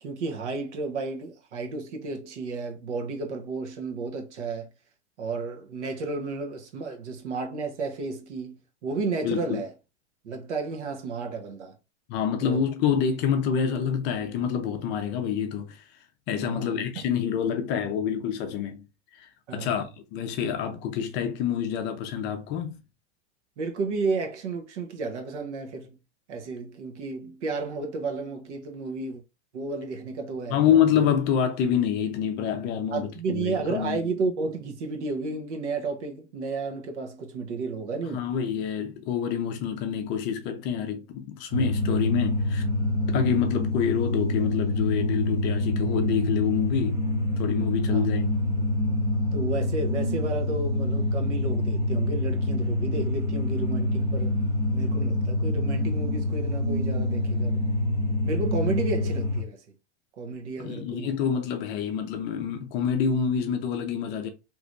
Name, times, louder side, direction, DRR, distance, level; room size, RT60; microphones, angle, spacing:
voice 1, 0.0-4.7 5.2-9.7 10.2-11.7 12.4-12.7 16.4-17.0 19.5-19.7 23.6-26.0 26.3-29.2 29.5-30.7 30.9-31.0 32.9-38.3 47.9-48.1 49.3-54.4 54.7-57.7 58.2-59.6 60.2-61.1, right 3 dB, 75° right, 1.1 m, -32 dB
voice 2, 9.2-9.6 12.1-15.8 16.3-18.8 19.1-22.8 30.5-34.0 38.1-42.6 43.1-47.0 47.4-48.3 60.6-64.3, left 8 dB, 30° left, 0.5 m, -27 dB
sound 1, 41.5-59.4, left 1 dB, 30° right, 0.8 m, -26 dB
3.2 x 3.0 x 2.5 m
hypercardioid pair, 135°, 35 cm